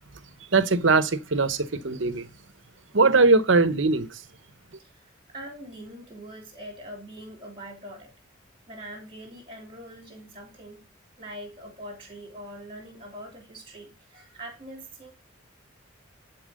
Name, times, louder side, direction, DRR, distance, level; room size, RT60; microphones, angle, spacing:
voice 1, 0.5-2.3 2.9-4.2, right 3 dB, 65° right, 0.9 m, -21 dB
voice 2, 4.8-8.1 8.7-10.8 11.2-15.1, equal, 25° right, 3.3 m, -43 dB
11.0 x 4.5 x 6.4 m
head